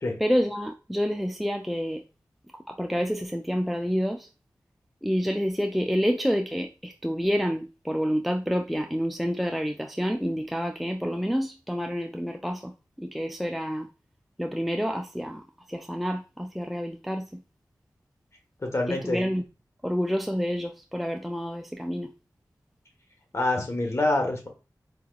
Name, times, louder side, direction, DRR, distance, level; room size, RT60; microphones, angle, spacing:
voice 1, 0.2-2.0 2.7-4.3 5.0-13.9 14.4-17.4 18.9-19.4 19.8-22.1, equal, ahead, 0.3 m, -28 dB
voice 2, 18.6-19.2 23.3-24.5, left 2 dB, 40° left, 1.2 m, -26 dB
4.7 x 2.9 x 2.3 m
wide cardioid pair, 80°, 7 cm